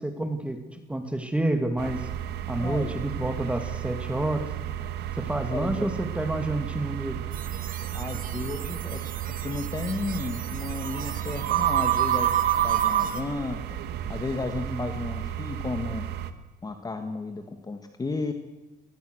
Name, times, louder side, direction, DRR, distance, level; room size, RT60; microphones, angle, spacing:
voice 1, 0.0-2.1 2.5-4.5 5.1-7.2 14.7-14.9, right 1 dB, 5° right, 7 dB, 2.5 m, -29 dB
sound 1, 1.8-16.3, right 11 dB, 80° right, 1.7 m, -30 dB
voice 2, 2.6-2.9 5.5-6.0 7.9-9.0 9.3-12.3 12.6-13.6 14.1-16.1 16.6-18.3, left 3 dB, 20° left, 7 dB, 2.0 m, -33 dB
sound 2, 7.3-13.2, right 9 dB, 55° right, 2.4 m, -42 dB
22.0 x 20.0 x 6.5 m, 1.1 s
cardioid pair, 110°, 17 cm